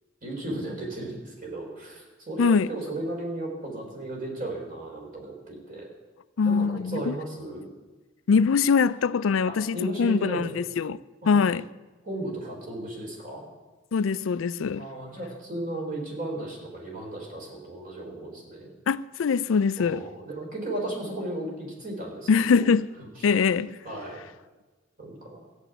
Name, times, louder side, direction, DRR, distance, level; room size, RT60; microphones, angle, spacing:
voice 1, 0.2-5.9 6.4-7.6 9.5-10.6 11.2-11.4 12.0-13.4 14.8-18.7 19.8-22.7 23.8-24.2 25.0-25.4, right 1 dB, 45° right, 4.1 m, -35 dB
voice 2, 2.4-2.7 6.4-7.1 8.3-11.0 11.3-11.7 13.9-14.9 18.9-20.0 22.3-22.9 23.2-23.8, left 5 dB, 85° left, 0.4 m, -23 dB
14.5 x 7.0 x 9.1 m
head